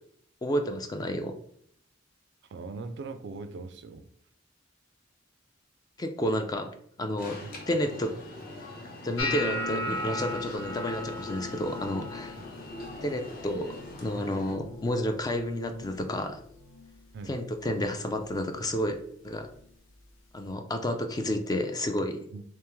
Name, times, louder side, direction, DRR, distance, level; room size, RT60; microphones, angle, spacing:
voice 1, 0.4-1.4 6.0-6.7 7.0-8.1 9.0-12.4 13.0-13.7 14.0-16.4 17.3-19.5 20.3-22.3, left 1 dB, 20° left, 6 dB, 0.3 m, -30 dB
voice 2, 2.5-4.1 7.4-7.5 17.1-17.4 22.3-22.4, right 3 dB, 60° right, 10 dB, 0.3 m, -40 dB
Alarm, 7.2-14.5, left 2 dB, 50° left, 0.8 m, -44 dB
sound 1, 9.2-15.3 15.5-16.1 16.4-16.9 17.6-17.8 19.5-19.6, left 2 dB, 80° left, 0.7 m, -37 dB
3.5 x 3.2 x 3.0 m, 0.65 s
head